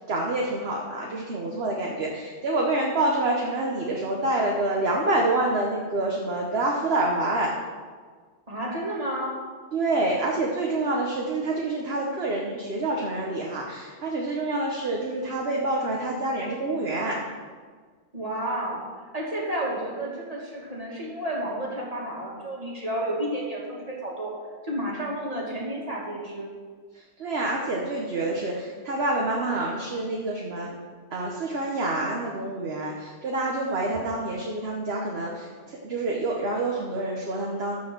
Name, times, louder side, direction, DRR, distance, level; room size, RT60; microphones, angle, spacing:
voice 1, 0.1-7.5 9.7-17.2 27.2-30.8 31.1-37.8, right 2 dB, 50° right, -1 dB, 1.3 m, -27 dB
voice 2, 8.5-9.3 18.1-18.8 19.1-24.3 24.6-26.5, right 1 dB, 25° right, -4 dB, 2.4 m, -31 dB
13.5 x 4.7 x 6.2 m, 1.6 s
omnidirectional pair, 1.5 m